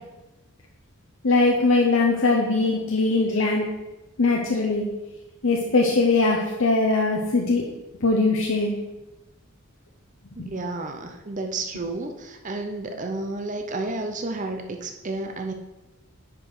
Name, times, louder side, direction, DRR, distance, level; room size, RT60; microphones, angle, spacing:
voice 1, 1.2-3.6 4.2-4.8 5.4-7.6 8.0-8.7 10.4-10.5, left 3 dB, 65° left, 0 dB, 0.9 m, -21 dB
voice 2, 10.4-15.5, right 2 dB, 35° right, 5 dB, 0.7 m, -31 dB
9.7 x 5.1 x 4.8 m, 1.1 s
head